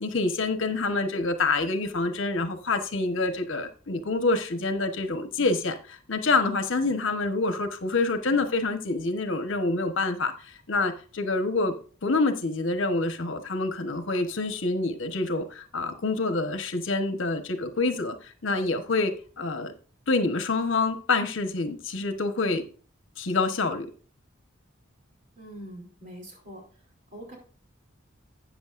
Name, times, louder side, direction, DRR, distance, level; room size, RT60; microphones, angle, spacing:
voice 1, 0.0-11.7 12.0-19.7 20.1-22.6 23.2-23.9, left 3 dB, 80° left, 8 dB, 1.2 m, -27 dB
voice 2, 25.4-26.8 27.1-27.4, right 1 dB, 40° right, -1 dB, 3.6 m, -43 dB
12.5 x 8.8 x 2.5 m, 0.40 s
head